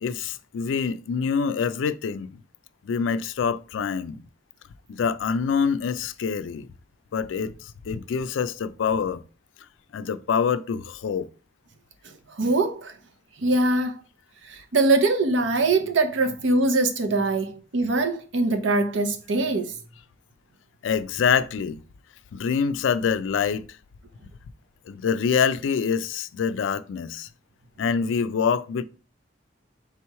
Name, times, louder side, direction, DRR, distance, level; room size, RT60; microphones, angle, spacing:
voice 1, 0.0-2.4 2.8-4.2 4.9-6.7 7.1-9.2 9.9-11.3 20.8-21.8 22.3-23.6 24.9-27.3 27.8-28.8, left 6 dB, 90° left, 0.4 m, -25 dB
voice 2, 12.0-12.9 13.4-14.0 14.4-19.8, right 2 dB, 80° right, 0.7 m, -23 dB
3.4 x 3.0 x 4.6 m
head